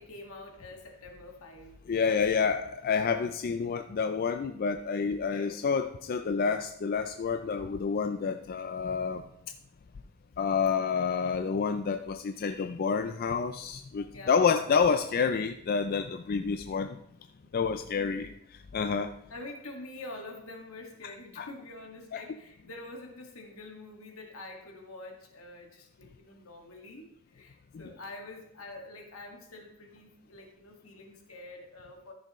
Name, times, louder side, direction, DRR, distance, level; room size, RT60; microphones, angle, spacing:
voice 1, 0.0-2.6 5.3-5.7 14.1-14.4 17.4-17.5 18.0-18.3 19.3-27.1 27.3-32.1, left 2 dB, 75° left, 2 dB, 1.8 m, -46 dB
voice 2, 1.9-9.2 10.4-17.0 17.5-18.3 18.7-19.1 21.4-21.5 22.1-22.2, left 5 dB, 45° left, 8 dB, 0.4 m, -28 dB
14.0 x 6.7 x 3.1 m, 0.78 s
head